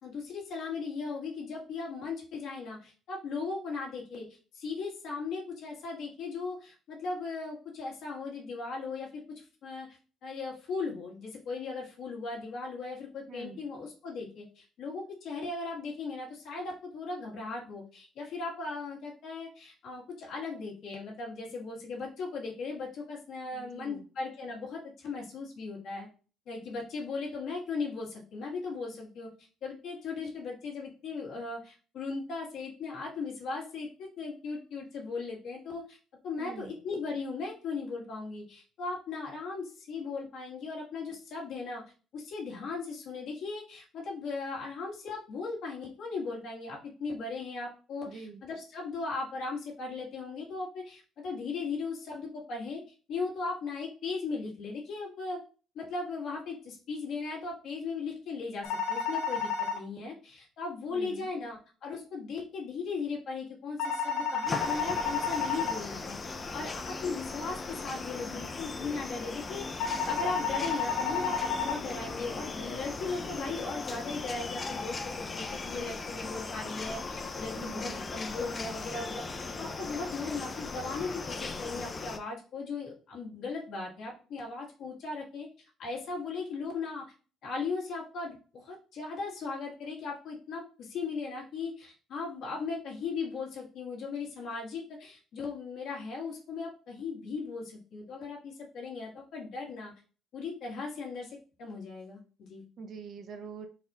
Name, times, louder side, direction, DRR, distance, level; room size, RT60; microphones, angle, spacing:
voice 1, 0.0-26.1 26.5-29.3 29.6-36.0 36.2-41.8 42.1-52.8 53.1-55.4 55.7-79.2 79.6-85.5 85.8-87.0 87.4-99.9 100.3-102.6, left 4 dB, 70° left, -2 dB, 1.5 m, -38 dB
voice 2, 13.3-13.6 23.5-24.1 36.4-36.8 48.1-48.4 60.9-61.3 77.6-78.1 102.8-103.7, right 5 dB, 55° right, 7 dB, 0.6 m, -44 dB
sound 1, 58.6-59.8 63.8-65.8 69.8-71.8, left 5 dB, 85° left, 0.5 m, -31 dB
sound 2, 64.5-82.2, left 3 dB, 30° left, 0.5 m, -38 dB
4.1 x 2.4 x 4.0 m, 0.38 s
cardioid pair, 115°, 0 cm